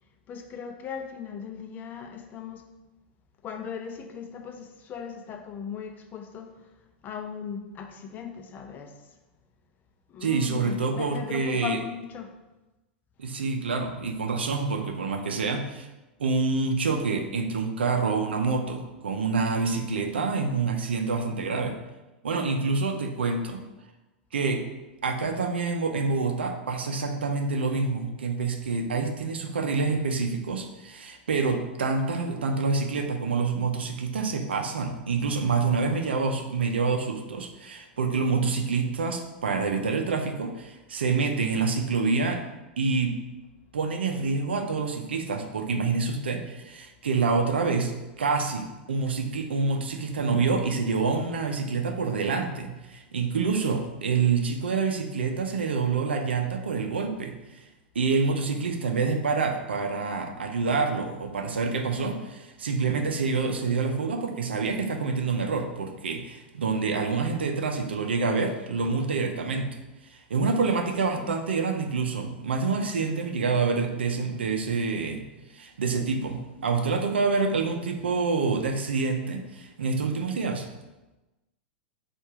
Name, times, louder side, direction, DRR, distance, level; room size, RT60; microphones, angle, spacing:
voice 1, 0.3-2.7 3.4-6.6 7.0-9.0 10.1-12.3 71.2-71.4, left 7 dB, 30° left, 5 dB, 0.6 m, -38 dB
voice 2, 10.2-11.8 13.2-15.9 16.2-21.8 22.2-23.6 24.3-24.6 25.0-42.4 42.8-43.2 43.7-57.7 57.9-69.8 70.1-75.2 75.5-80.7, right 4 dB, 85° right, 5 dB, 0.6 m, -27 dB
4.3 x 2.5 x 4.8 m, 1.1 s
hypercardioid pair, 105°, 6 cm